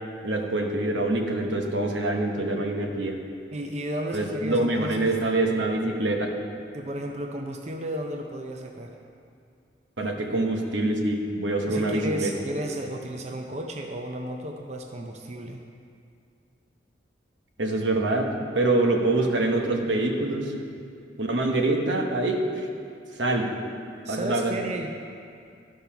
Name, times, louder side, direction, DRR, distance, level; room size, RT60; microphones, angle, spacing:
voice 1, 0.2-3.2 4.1-6.3 10.0-12.3 17.6-20.5 21.2-22.4 23.2-23.5 24.1-24.5, right 2 dB, 85° right, 2 dB, 1.1 m, -25 dB
voice 2, 3.5-5.1 6.7-9.0 11.7-15.6 24.0-24.9, right 1 dB, 35° right, 2 dB, 0.6 m, -33 dB
12.0 x 5.4 x 5.7 m, 2.4 s
head